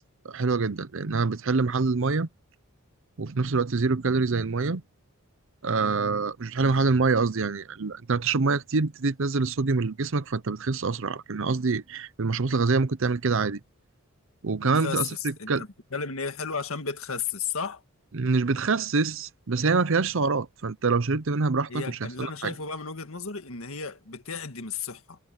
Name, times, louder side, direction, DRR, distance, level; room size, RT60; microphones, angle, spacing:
voice 1, 0.2-2.3 3.2-4.8 5.6-13.6 14.4-15.6 18.1-22.5, right 4 dB, 65° right, 0.7 m, -25 dB
voice 2, 14.6-17.8 21.7-25.2, left 5 dB, 80° left, 1.8 m, -34 dB
head